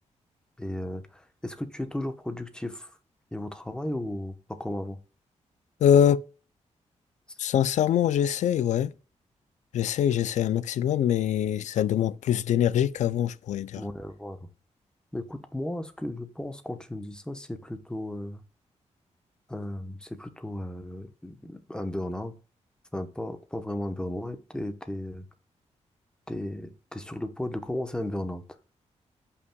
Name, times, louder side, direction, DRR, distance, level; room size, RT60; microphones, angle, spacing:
voice 1, 0.6-2.9 3.3-5.0 7.3-7.4 13.8-14.5 15.1-18.4 19.5-22.3 22.9-25.3 26.3-28.4, left 1 dB, 5° left, 0.9 m, -35 dB
voice 2, 5.8-6.2 7.4-8.9 9.7-13.8, left 10 dB, 85° left, 0.4 m, -23 dB
14.5 x 5.7 x 2.3 m
wide cardioid pair, 110°, 12 cm